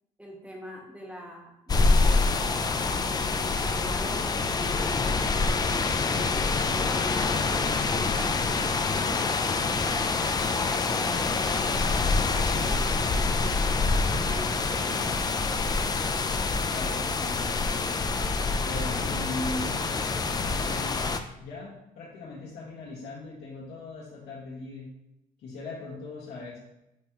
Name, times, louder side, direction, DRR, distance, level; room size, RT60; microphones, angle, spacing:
voice 1, 0.2-2.6 3.3-9.3 9.6-10.2 10.9-11.8 12.2-13.4 14.2-15.1, equal, 10° right, -1 dB, 1.6 m, -43 dB
sound 1, 1.7-21.2, left 3 dB, 25° left, 0.5 m, -26 dB
voice 2, 16.6-18.3 18.6-19.8 20.4-21.1 21.4-24.9 25.4-26.6, left 2 dB, 75° left, -6 dB, 1.8 m, -39 dB
9.9 x 3.4 x 3.0 m, 0.88 s
cardioid pair, 110°, 17 cm